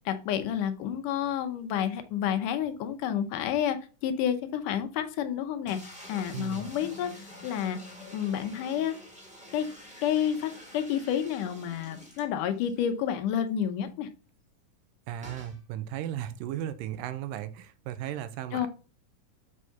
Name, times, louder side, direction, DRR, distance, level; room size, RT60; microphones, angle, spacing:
voice 1, 0.1-3.8 4.0-7.8 8.1-8.9 9.5-9.7 10.0-14.1 18.5-18.7, left 9 dB, 75° left, 2.2 m, -30 dB
sound 1, 5.6-12.8 13.1-13.2 13.5-13.6 15.2-15.6, left 1 dB, 5° right, 1.7 m, -47 dB
voice 2, 6.3-6.6 15.1-18.7, right 11 dB, 85° right, 2.3 m, -36 dB
6.3 x 4.8 x 5.7 m
omnidirectional pair, 3.9 m